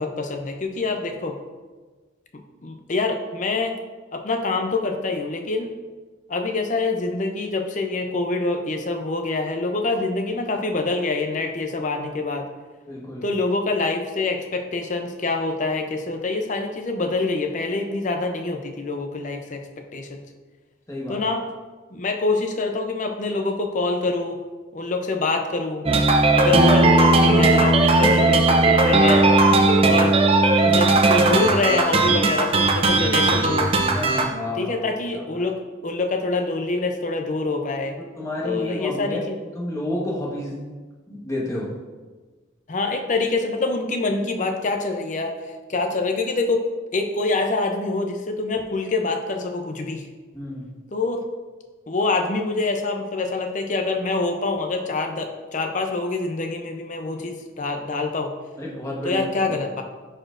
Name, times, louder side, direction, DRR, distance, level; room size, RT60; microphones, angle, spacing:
voice 1, 0.0-1.4 2.6-3.8 4.1-5.7 6.3-12.5 13.2-19.6 19.9-20.2 21.1-21.4 21.9-24.4 24.7-25.9 26.3-29.3 29.8-30.2 30.6-33.7 34.5-38.0 38.4-39.2 42.7-46.6 46.9-50.1 50.9-51.2 51.9-58.3 59.0-59.8, left 3 dB, 40° left, 4 dB, 0.6 m, -25 dB
voice 2, 12.9-13.2 20.9-21.2 30.7-30.8 33.9-34.8 35.1-35.5 38.0-39.3 39.5-40.7 41.1-41.8 50.3-50.7 58.6-59.2, left 1 dB, 15° left, -4 dB, 1.2 m, -30 dB
sound 1, 25.9-34.3, right 2 dB, 30° right, 0.5 m, -17 dB
11.0 x 4.3 x 2.5 m, 1.3 s
head